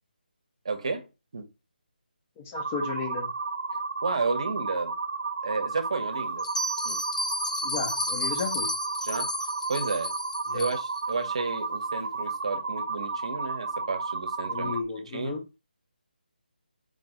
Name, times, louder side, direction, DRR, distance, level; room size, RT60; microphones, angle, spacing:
voice 1, 0.6-1.1 1.3-1.5 4.0-4.9 5.4-6.5 6.8-7.0 9.0-9.3 9.7-10.1 10.5-14.8 15.0-15.4, right 4 dB, 35° right, 0.8 m, -31 dB
voice 2, 2.4-3.3 7.6-8.7 10.5-10.7 14.5-15.4, left 5 dB, 10° left, 0.4 m, -34 dB
sound 1, 2.5-14.8, right 4 dB, 65° right, 0.5 m, -33 dB
Bell, 6.4-11.0, left 2 dB, 50° left, 0.8 m, -33 dB
3.8 x 2.6 x 4.7 m
hypercardioid pair, 175°, 5 cm